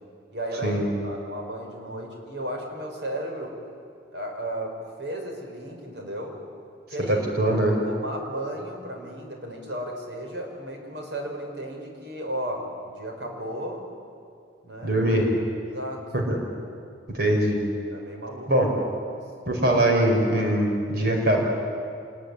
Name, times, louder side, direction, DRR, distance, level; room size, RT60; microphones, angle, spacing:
voice 1, 0.3-3.6 4.1-6.4 6.9-7.5 7.8-13.8 14.6-15.0 15.7-16.1 17.9-18.7 19.1-19.2, right 1 dB, 80° right, 2 dB, 5.6 m, -34 dB
voice 2, 7.0-7.8 14.8-15.3 16.1-16.4 17.1-17.6 18.5-18.7 19.5-21.4, right 1 dB, 55° right, 1 dB, 5.2 m, -22 dB
26.0 x 21.0 x 10.0 m, 2.3 s
head